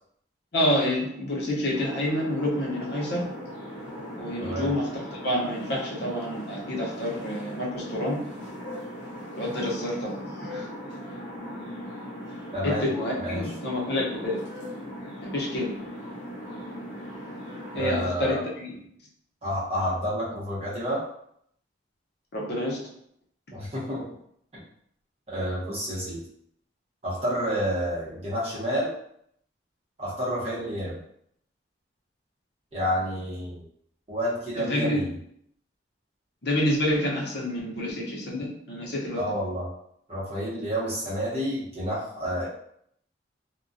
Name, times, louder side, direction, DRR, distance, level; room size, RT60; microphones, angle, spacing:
voice 1, 0.5-3.3 4.2-8.2 9.4-10.7 12.6-14.4 15.2-15.8 17.7-18.8 22.3-22.8 34.6-35.1 36.4-39.3, left 1 dB, 60° left, -3 dB, 0.7 m, -28 dB
sound 1, 1.7-18.1, equal, 85° left, 0.8 m, -39 dB
voice 2, 4.4-4.7 12.5-12.9 13.2-13.5 17.7-18.4 19.4-21.0 23.5-24.1 25.3-26.2 27.0-28.9 30.0-31.0 32.7-33.6 34.1-35.1 39.2-39.7 40.1-42.5, equal, 35° right, -7 dB, 0.9 m, -29 dB
2.3 x 2.2 x 2.6 m, 0.70 s
head